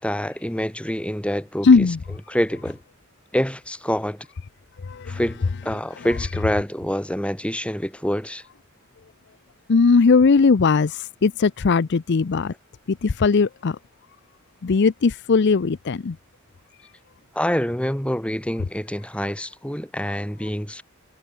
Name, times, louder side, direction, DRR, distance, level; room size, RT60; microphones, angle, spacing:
voice 1, 0.0-2.8 3.3-4.3 5.1-8.4 17.3-20.8, equal, 5° left, 5.5 m, -26 dB
voice 2, 1.6-2.0 9.7-10.9 11.2-12.5 13.0-13.7 14.6-16.1, left 4 dB, 55° left, 0.5 m, -18 dB
head